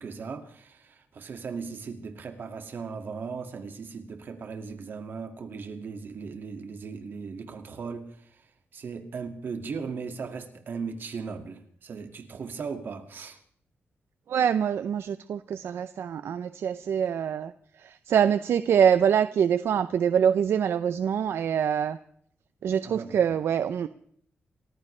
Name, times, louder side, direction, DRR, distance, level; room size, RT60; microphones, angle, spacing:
voice 1, 0.0-13.4 22.8-23.2, right 5 dB, 55° right, 2.1 m, -38 dB
voice 2, 14.3-17.5 17.8-22.0 22.6-23.9, right 8 dB, 75° right, 0.6 m, -24 dB
28.5 x 15.0 x 3.3 m
wide cardioid pair, 155°, 4 cm